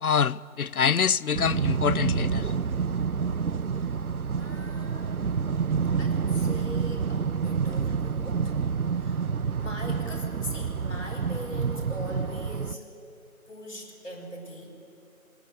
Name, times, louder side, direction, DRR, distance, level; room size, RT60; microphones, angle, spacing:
voice 1, 0.0-2.5, left 6 dB, 90° left, 0.6 m, -25 dB
sound 1, 1.3-12.8, right 6 dB, 80° right, 0.7 m, -28 dB
voice 2, 4.4-5.2 6.0-8.6 9.0-9.2 9.6-12.9 13.5-14.8, left 1 dB, 60° left, 5.5 m, -41 dB
19.5 x 15.5 x 8.7 m
figure-of-eight pair, 175°, 43 cm